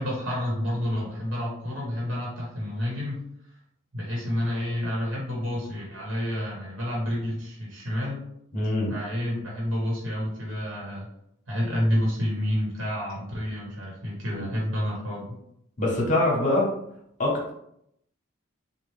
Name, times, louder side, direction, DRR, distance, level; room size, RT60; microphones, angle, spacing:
voice 1, 0.0-3.2 3.9-8.2 8.9-11.1 11.5-15.3, equal, 65° right, -3 dB, 1.2 m, -29 dB
voice 2, 8.5-8.9 15.8-16.7 17.2-17.5, left 2 dB, 40° left, -3 dB, 1.0 m, -23 dB
4.2 x 2.3 x 3.3 m, 0.76 s
head